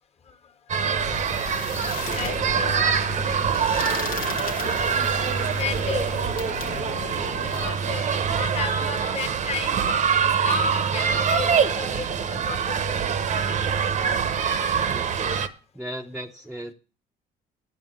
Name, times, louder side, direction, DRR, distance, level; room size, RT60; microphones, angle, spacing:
sound 1, 0.7-15.5, right 7 dB, 45° right, 0.9 m, -24 dB
sound 2, 1.0-7.7, left 8 dB, 55° left, 0.9 m, -35 dB
voice 1, 2.1-2.9 5.6-6.1 7.6-9.8 10.4-12.6 13.1-13.2, left 6 dB, 40° left, 6 dB, 1.5 m, -33 dB
voice 2, 14.7-15.5 15.7-16.7, right 1 dB, 5° right, 2 dB, 0.7 m, -37 dB
9.3 x 6.5 x 7.8 m, 0.37 s
cardioid pair, 110°, 17 cm